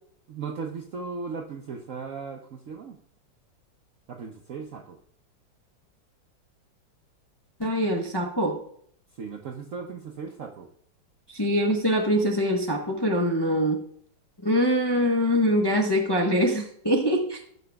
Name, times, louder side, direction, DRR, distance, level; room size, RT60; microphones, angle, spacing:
voice 1, 0.3-3.0 4.1-5.0 9.2-10.7, right 5 dB, 65° right, 3 dB, 0.8 m, -37 dB
voice 2, 7.6-8.6 11.3-13.8 14.4-17.4, equal, 20° left, -1 dB, 0.6 m, -23 dB
16.0 x 6.7 x 2.3 m, 0.66 s
omnidirectional pair, 2.1 m